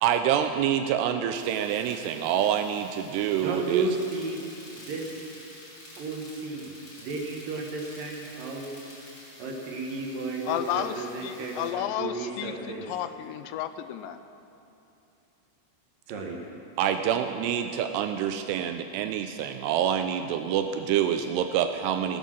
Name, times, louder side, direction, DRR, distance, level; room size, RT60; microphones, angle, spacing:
voice 1, 0.0-3.9 16.8-22.2, right 9 dB, 85° right, 7 dB, 2.5 m, -26 dB
sound 1, 1.3-11.7, left 1 dB, 20° left, 3.4 m, -49 dB
voice 2, 3.3-4.4 4.7-5.1 6.0-8.7 9.4-12.9 16.1-16.4, right 3 dB, 65° right, -1 dB, 2.4 m, -33 dB
voice 3, 10.5-11.0 11.2-12.5 12.9-14.2, left 11 dB, 85° left, 10 dB, 2.7 m, -32 dB
17.5 x 8.4 x 6.3 m, 2.8 s
omnidirectional pair, 5.0 m